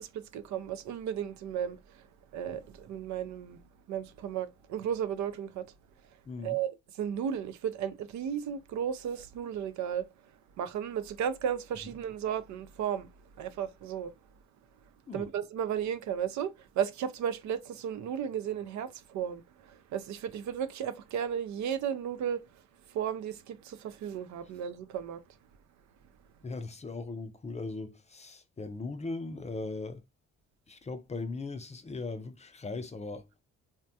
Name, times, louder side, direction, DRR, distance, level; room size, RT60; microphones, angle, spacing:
voice 1, 0.0-1.8 2.3-3.6 3.9-5.7 6.4-10.0 10.6-13.1 13.4-14.1 15.1-22.4 22.9-25.2, right 8 dB, 70° right, 0.5 m, -34 dB
voice 2, 6.3-6.6 15.1-15.3 26.4-30.0 30.7-33.3, left 3 dB, 25° left, 0.4 m, -39 dB
3.3 x 2.2 x 2.6 m
cardioid pair, 90°, 30 cm